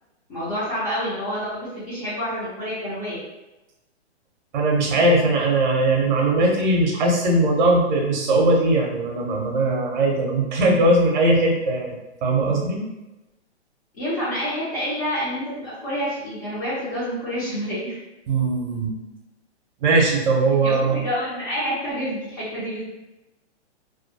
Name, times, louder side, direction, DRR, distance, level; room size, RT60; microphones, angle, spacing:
voice 1, 0.3-3.2 13.9-18.0 20.6-22.8, equal, 30° left, -11 dB, 0.8 m, -28 dB
voice 2, 4.5-12.8 18.3-18.9 19.8-21.0, right 2 dB, 45° right, 0 dB, 0.7 m, -20 dB
2.4 x 2.1 x 2.6 m, 1.0 s
hypercardioid pair, 155°, 34 cm